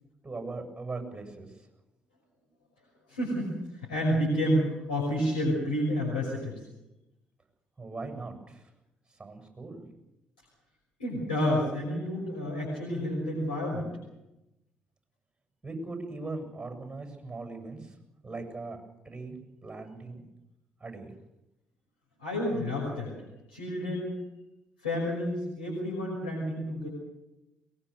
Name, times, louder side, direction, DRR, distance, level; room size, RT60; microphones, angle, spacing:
voice 1, 0.2-1.7 7.8-8.7 9.1-9.9 15.6-18.0 18.2-20.2 20.8-21.1, right 3 dB, 20° right, 5 dB, 7.8 m, -40 dB
voice 2, 3.1-6.5 11.0-13.9 22.2-23.1 23.5-24.1 24.8-26.9, equal, 90° left, -4 dB, 5.9 m, -29 dB
22.5 x 21.0 x 6.8 m, 0.93 s
hypercardioid pair, 45°, 5 cm